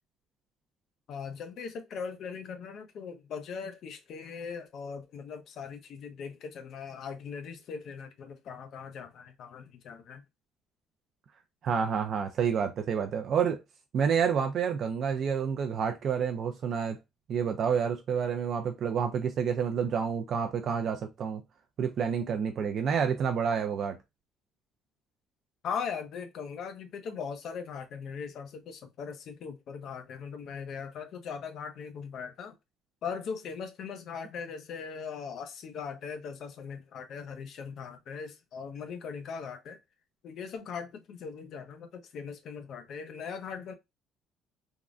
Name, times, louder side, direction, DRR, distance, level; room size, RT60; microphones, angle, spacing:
voice 1, 1.1-10.2 25.6-32.5 33.0-39.8 40.2-43.7, left 6 dB, 50° left, 0.6 m, -40 dB
voice 2, 11.6-13.6 13.9-17.0 17.3-21.4 21.8-24.0, right 7 dB, 45° right, 0.4 m, -29 dB
3.6 x 2.1 x 2.4 m
cardioid pair, 155°, 0 cm